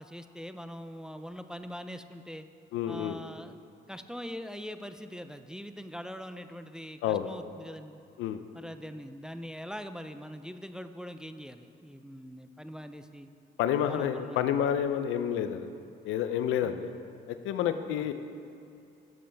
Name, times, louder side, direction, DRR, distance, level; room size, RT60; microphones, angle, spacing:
voice 1, 0.0-2.5 2.9-3.6 3.9-8.0 8.5-13.3 13.9-14.5 16.6-16.7 18.0-18.1, equal, 5° right, 9 dB, 0.4 m, -42 dB
voice 2, 2.7-3.2 7.0-7.3 8.2-8.4 13.6-15.7 16.1-16.9 17.3-18.1, left 9 dB, 90° left, 10 dB, 0.5 m, -29 dB
12.0 x 7.6 x 3.4 m, 2.6 s
cardioid pair, 90°, 20 cm